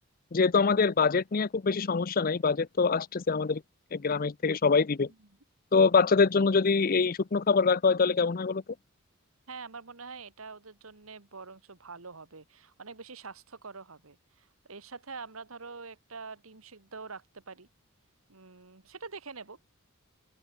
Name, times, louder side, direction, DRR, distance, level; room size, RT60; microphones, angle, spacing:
voice 1, 0.3-3.6 3.9-5.1 5.7-8.6, left 4 dB, 45° left, 0.6 m, -24 dB
voice 2, 9.5-17.7 18.3-19.6, right 4 dB, 90° right, 1.8 m, -45 dB
open air
head